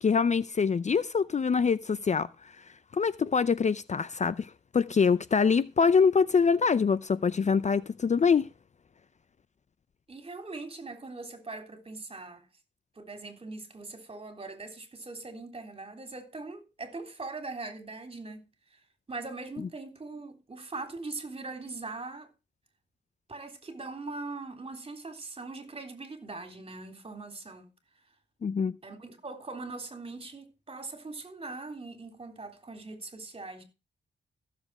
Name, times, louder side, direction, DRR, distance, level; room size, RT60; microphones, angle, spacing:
voice 1, 0.0-2.3 2.9-8.5 28.4-28.8, left 5 dB, 40° left, 0.5 m, -24 dB
voice 2, 10.1-12.5 13.0-18.4 18.7-18.8 19.1-22.3 23.3-27.7 28.8-33.6, right 3 dB, 30° right, 3.6 m, -41 dB
15.0 x 7.6 x 4.9 m
cardioid pair, 95°, 18 cm